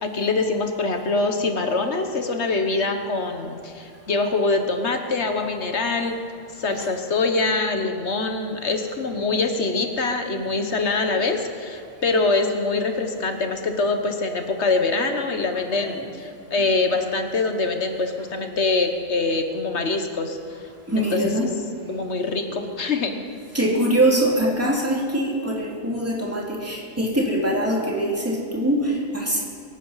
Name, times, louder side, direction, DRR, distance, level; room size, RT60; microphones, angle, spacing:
voice 1, 0.0-6.1 6.6-20.4 21.0-21.3 21.9-23.2, left 3 dB, 55° left, 5 dB, 1.4 m, -24 dB
voice 2, 15.5-16.1 20.9-21.5 23.5-29.4, right 1 dB, 10° right, -3 dB, 2.7 m, -23 dB
23.0 x 9.2 x 5.6 m, 2.2 s
omnidirectional pair, 1.4 m